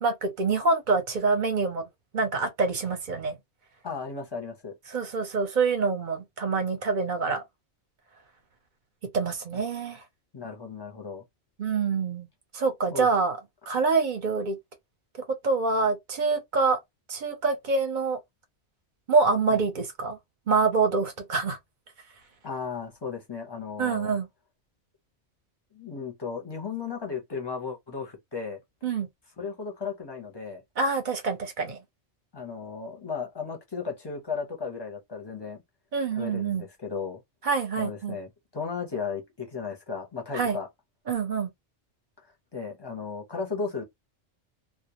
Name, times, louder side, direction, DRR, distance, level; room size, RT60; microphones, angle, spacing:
voice 1, 0.0-1.9 2.1-3.3 4.9-7.4 9.1-10.0 11.6-12.3 12.5-13.4 13.7-14.6 15.4-16.8 17.1-18.2 19.1-20.2 20.5-21.6 23.8-24.3 28.8-29.1 30.8-31.8 35.9-36.6 37.4-38.2 40.3-40.6 41.1-41.5, right 4 dB, 50° right, 0.7 m, -26 dB
voice 2, 3.8-4.7 10.3-11.2 12.9-13.1 19.5-19.6 22.4-24.2 25.7-28.6 29.4-30.6 32.3-35.6 36.2-37.2 37.8-40.7 42.5-43.8, left 5 dB, 30° left, 0.6 m, -35 dB
2.3 x 2.0 x 2.8 m
omnidirectional pair, 1.2 m